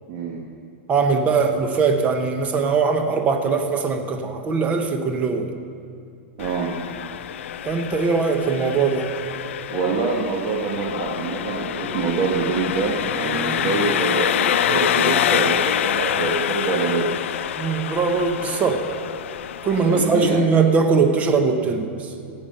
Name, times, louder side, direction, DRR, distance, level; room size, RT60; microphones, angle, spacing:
voice 1, 0.1-0.4 6.4-6.8 9.7-17.0 19.8-20.4, right 4 dB, 45° right, -2 dB, 1.5 m, -25 dB
voice 2, 0.9-5.5 7.6-9.1 17.6-18.8 19.6-22.1, right 4 dB, 20° right, 5 dB, 1.1 m, -21 dB
Engine, 6.4-20.4, left 10 dB, 85° left, 0.5 m, -26 dB
16.0 x 8.6 x 5.5 m, 2.5 s
supercardioid pair, 150°, 7 cm